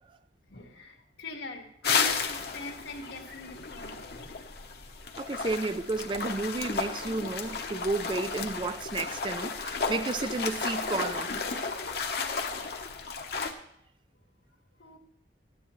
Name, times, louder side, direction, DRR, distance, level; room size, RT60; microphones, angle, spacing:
voice 1, 0.5-4.0 8.3-8.4 14.8-15.0, left 3 dB, 80° left, 1.7 m, -42 dB
sound 1, 1.8-13.5, left 5 dB, 55° left, 0.9 m, -33 dB
voice 2, 5.2-11.5, right 3 dB, 25° right, 0.3 m, -32 dB
14.0 x 9.9 x 3.1 m
head